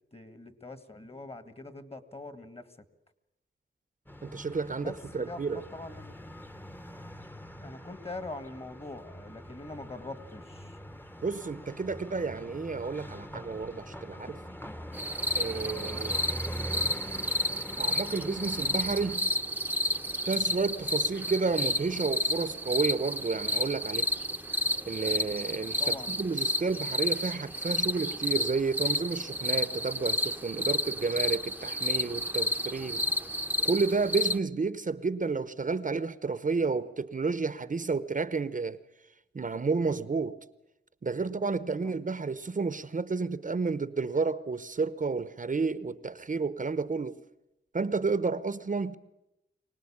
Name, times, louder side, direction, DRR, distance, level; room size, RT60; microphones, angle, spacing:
voice 1, 0.1-2.7 4.8-6.1 7.6-10.8 14.7-14.8 25.8-26.2 41.8-41.9, left 2 dB, 30° left, 1.8 m, -43 dB
sound 1, 4.1-19.2, equal, 10° left, 1.0 m, -43 dB
voice 2, 4.2-5.6 11.2-14.4 15.4-16.2 17.8-19.3 20.3-24.1 24.9-33.0 33.6-38.8 39.3-40.4 41.0-47.2 47.7-49.0, right 4 dB, 40° right, 0.8 m, -31 dB
sound 2, 14.9-34.4, left 1 dB, 10° right, 0.8 m, -31 dB
24.5 x 18.5 x 8.6 m
wide cardioid pair, 100°, 20 cm